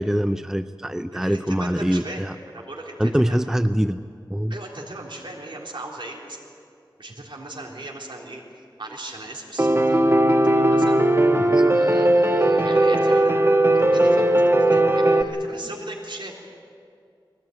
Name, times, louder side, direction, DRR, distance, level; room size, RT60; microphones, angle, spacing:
voice 1, 0.0-2.4 3.0-4.5 11.4-11.7, equal, 5° right, 11 dB, 0.5 m, -24 dB
voice 2, 1.1-3.4 4.5-6.4 7.0-8.4 8.8-10.2 10.4-11.1 11.7-13.4 13.7-16.6, right 2 dB, 75° right, -2 dB, 3.7 m, -38 dB
Piano, 9.6-15.2, right 1 dB, 30° right, 1.4 m, -18 dB
21.5 x 17.5 x 9.4 m, 2.3 s
wide cardioid pair, 55°, 8 cm